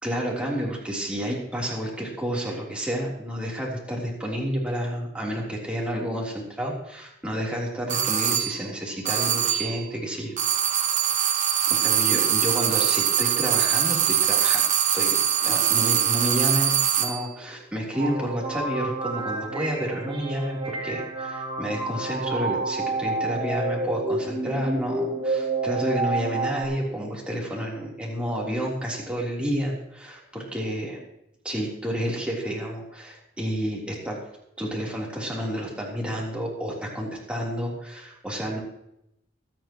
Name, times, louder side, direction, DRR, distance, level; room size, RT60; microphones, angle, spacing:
voice 1, 0.0-10.4 10.9-11.2 11.7-14.7 14.9-31.0 31.4-34.2 34.6-38.6, equal, 5° right, -3 dB, 3.4 m, -30 dB
sound 1, 7.9-8.6 9.1-9.8 10.4-17.2, right 9 dB, 40° right, 1.3 m, -23 dB
sound 2, 17.9-26.6, right 3 dB, 25° right, 2.4 m, -29 dB
25.0 x 9.1 x 3.0 m, 0.82 s
head